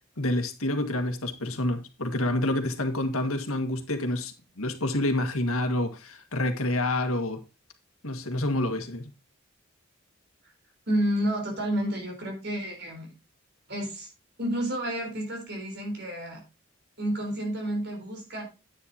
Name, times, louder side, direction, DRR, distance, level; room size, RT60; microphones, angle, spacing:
voice 1, 0.2-7.4 8.0-9.1, left 1 dB, 85° left, 1.8 m, -28 dB
voice 2, 10.9-13.1 13.7-14.1 14.4-16.4 17.0-18.4, right 1 dB, 50° right, 4.2 m, -30 dB
9.9 x 9.5 x 2.8 m
head